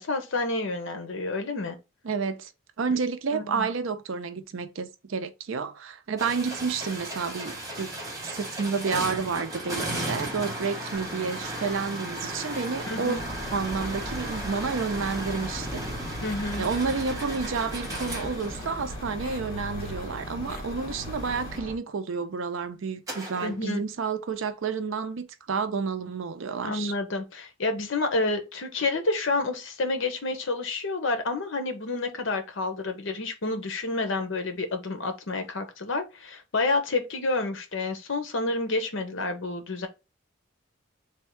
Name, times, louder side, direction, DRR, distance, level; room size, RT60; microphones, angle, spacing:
voice 1, 0.0-1.8 3.3-3.7 12.9-13.2 16.2-16.7 23.4-23.8 26.6-39.9, left 3 dB, 70° left, 0.8 m, -29 dB
voice 2, 2.0-2.5 2.8-7.9 8.3-13.2 13.5-15.8 16.6-26.9, right 5 dB, 75° right, 0.5 m, -30 dB
sound 1, 6.2-19.2 23.1-23.5, right 1 dB, 15° right, 1.0 m, -35 dB
sound 2, 10.9-21.6, left 2 dB, 45° left, 1.0 m, -46 dB
sound 3, 13.2-21.8, equal, 20° left, 0.8 m, -38 dB
3.5 x 2.3 x 4.4 m
head